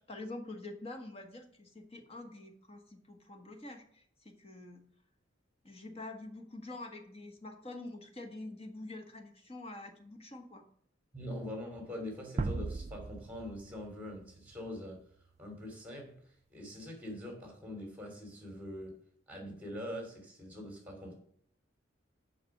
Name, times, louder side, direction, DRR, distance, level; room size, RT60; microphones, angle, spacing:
voice 1, 0.0-4.8 5.6-10.6, left 2 dB, 30° left, 4 dB, 1.4 m, -46 dB
voice 2, 11.1-15.0 15.4-19.0 19.3-21.1, left 1 dB, 10° right, 2 dB, 3.0 m, -43 dB
sound 1, 12.4-15.3, right 3 dB, 35° right, 0.4 m, -39 dB
7.6 x 5.9 x 7.2 m, 0.63 s
head